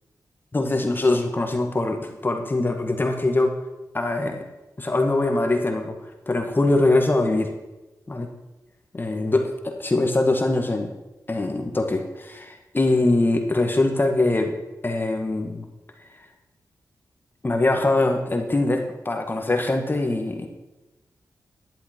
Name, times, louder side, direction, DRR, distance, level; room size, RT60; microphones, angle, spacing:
voice 1, 0.5-3.5 3.9-4.4 4.8-6.0 6.3-7.5 8.1-8.3 9.0-10.9 11.3-14.5 14.8-15.7 17.4-20.5, left 2 dB, 30° left, 4 dB, 1.7 m, -22 dB
11.5 x 10.5 x 4.5 m, 1.0 s
cardioid pair, 65°, 7 cm